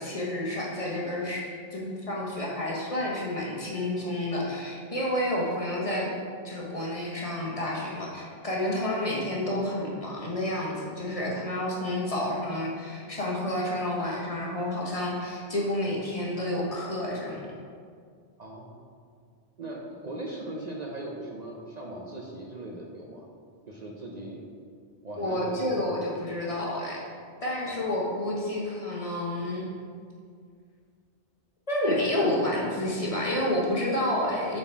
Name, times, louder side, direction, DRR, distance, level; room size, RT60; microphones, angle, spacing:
voice 1, 0.0-6.1 6.4-17.4 25.2-27.0 27.4-29.7 31.7-34.6, left 1 dB, 35° left, -4 dB, 1.2 m, -30 dB
voice 2, 18.4-18.8 19.6-23.3 23.7-24.4 25.0-25.9 27.6-27.9, right 1 dB, 45° right, -2 dB, 0.7 m, -39 dB
7.5 x 4.1 x 4.5 m, 2.1 s
omnidirectional pair, 1.0 m